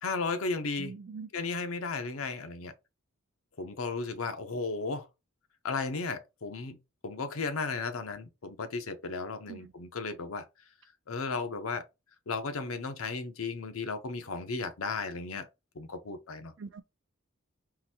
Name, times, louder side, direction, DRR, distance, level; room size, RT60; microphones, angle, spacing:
voice 1, 0.0-1.0 1.3-2.7 3.6-5.1 5.6-6.8 7.0-10.5 11.1-11.8 12.3-15.5 15.7-16.5, left 4 dB, 85° left, 0.7 m, -35 dB
voice 2, 0.8-1.3 9.5-9.7 16.6-16.8, right 5 dB, 60° right, 0.4 m, -43 dB
3.9 x 2.6 x 2.8 m
head